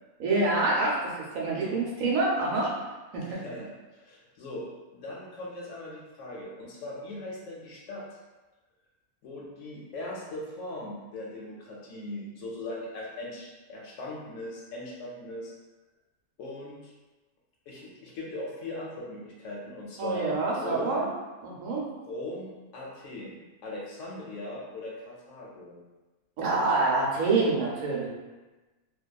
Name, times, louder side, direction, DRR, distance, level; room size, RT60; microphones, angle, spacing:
voice 1, 0.2-1.0 1.3-2.7 3.1-3.4 20.0-21.1 21.4-21.8 26.4-28.1, right 3 dB, 70° right, -3 dB, 0.9 m, -26 dB
voice 2, 3.2-4.7 4.9-8.1 9.2-15.5 16.4-16.9 17.7-21.1 22.0-25.8, left 1 dB, 70° left, -4 dB, 0.8 m, -39 dB
2.7 x 2.3 x 2.2 m, 1.2 s
omnidirectional pair, 1.5 m